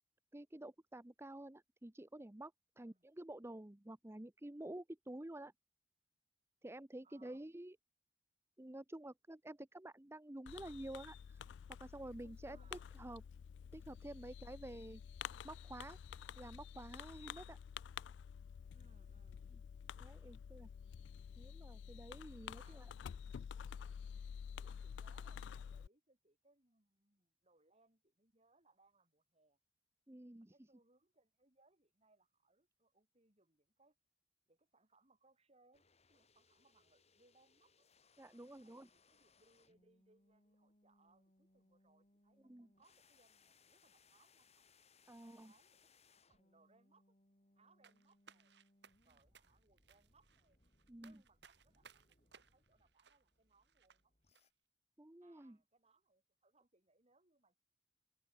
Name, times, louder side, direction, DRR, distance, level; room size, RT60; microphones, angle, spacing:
voice 1, 0.3-5.5 6.6-7.8 8.6-11.5 11.8-13.2 13.7-15.1 15.4-16.0 16.4-17.6 19.5-19.6 20.0-20.7 21.4-22.9 30.1-30.5 38.2-38.9 42.4-42.7 45.1-45.5 50.9-51.2 55.0-55.6, right 1 dB, 15° right, 0.7 m, -50 dB
voice 2, 7.0-7.4 12.5-12.9 18.7-19.5 22.6-23.5 24.1-24.2 24.6-29.6 30.5-33.9 34.5-37.9 38.6-44.7 45.2-47.1 47.5-48.6 49.0-50.6 51.0-54.1 55.2-57.6, right 3 dB, 35° right, 6.6 m, -73 dB
Fireworks, 10.5-25.9, left 7 dB, 75° left, 0.3 m, -50 dB
sound 1, 35.7-54.5, left 4 dB, 35° left, 7.4 m, -73 dB
sound 2, 47.8-54.0 54.3-54.4, right 6 dB, 65° right, 1.9 m, -65 dB
head